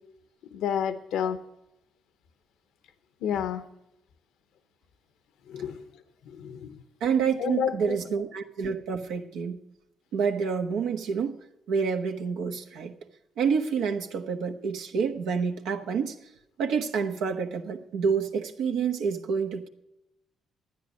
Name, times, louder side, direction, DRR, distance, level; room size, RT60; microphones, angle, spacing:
voice 1, 0.5-1.4 3.2-3.6 5.5-5.8 6.3-6.8 7.4-8.0, left 8 dB, 85° left, 0.8 m, -30 dB
voice 2, 7.0-9.6 10.1-11.4 11.7-12.9 13.4-16.2 16.6-19.7, right 6 dB, 90° right, 1.2 m, -28 dB
12.5 x 9.4 x 6.2 m
cardioid pair, 90°, 0 cm